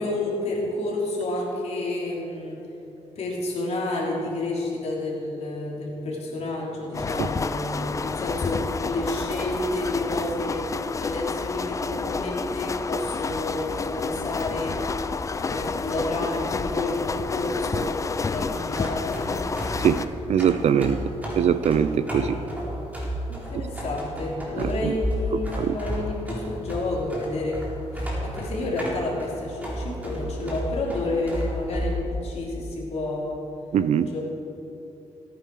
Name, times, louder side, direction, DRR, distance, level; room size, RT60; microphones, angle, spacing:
voice 1, 0.0-2.6 3.1-14.8 15.4-17.9 18.3-19.4 22.1-22.5 23.3-27.6 27.9-33.4 34.1-34.2, left 2 dB, 60° left, -4 dB, 3.2 m, -30 dB
sound 1, 6.9-20.0, left 4 dB, 25° left, 0.4 m, -30 dB
sound 2, 18.5-32.0, equal, 15° right, 3.4 m, -32 dB
voice 2, 20.3-21.0 21.4-22.4 24.6-25.0 25.3-25.8 33.7-34.1, right 8 dB, 65° right, 14 dB, 0.5 m, -22 dB
17.0 x 9.5 x 4.8 m, 3.0 s
cardioid pair, 105°, 12 cm